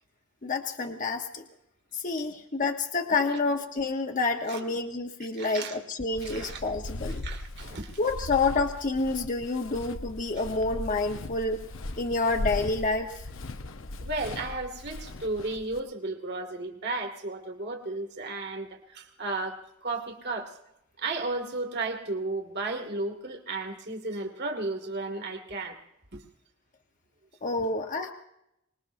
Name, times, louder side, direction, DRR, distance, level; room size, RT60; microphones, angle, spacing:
voice 1, 0.4-1.4 1.9-7.2 8.0-11.6 12.0-13.3 27.4-28.1, left 3 dB, 40° left, 4 dB, 1.0 m, -28 dB
voice 2, 5.2-5.8 6.2-6.6 7.1-8.0 14.0-20.5 21.0-25.8 26.1-26.2, right 2 dB, 55° right, 3 dB, 2.1 m, -34 dB
Walk footsteps, 6.1-15.8, left 1 dB, 70° left, 0.8 m, -38 dB
25.0 x 20.5 x 2.6 m, 0.84 s
head